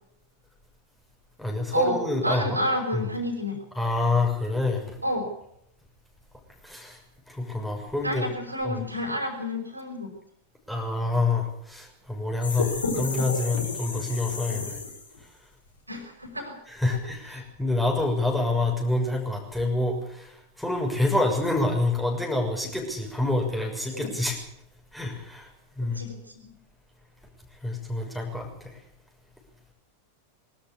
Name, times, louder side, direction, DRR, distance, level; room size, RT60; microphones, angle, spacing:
voice 1, 1.4-2.6 2.9-3.1 3.7-5.0 6.6-7.0 7.3-8.3 8.6-8.9 10.7-14.8 16.7-24.4 24.9-25.5 25.8-26.0 27.6-28.8, left 2 dB, 5° left, 0 dB, 6.4 m, -27 dB
voice 2, 2.2-3.6 5.0-5.3 8.0-10.1 15.9-16.6 16.9-17.0 23.9-24.1 25.9-26.5, left 1 dB, 85° right, 4 dB, 5.8 m, -29 dB
sound 1, 12.4-15.2, left 3 dB, 75° left, 5.1 m, -31 dB
23.0 x 13.5 x 8.5 m, 0.77 s
figure-of-eight pair, 90°, 0 cm